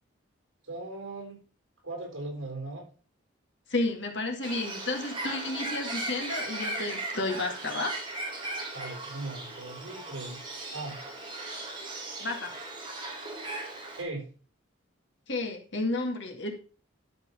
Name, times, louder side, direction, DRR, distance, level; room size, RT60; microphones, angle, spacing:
voice 1, 0.6-1.4 1.8-2.8 8.7-10.4 10.7-11.0 13.9-14.2, right 2 dB, 65° right, 1 dB, 4.5 m, -38 dB
voice 2, 3.7-7.9 12.2-12.5 15.3-16.5, left 2 dB, 55° left, 2 dB, 2.1 m, -31 dB
Bird, 4.4-14.0, right 2 dB, 20° right, 2.1 m, -37 dB
12.0 x 4.7 x 5.6 m, 0.38 s
head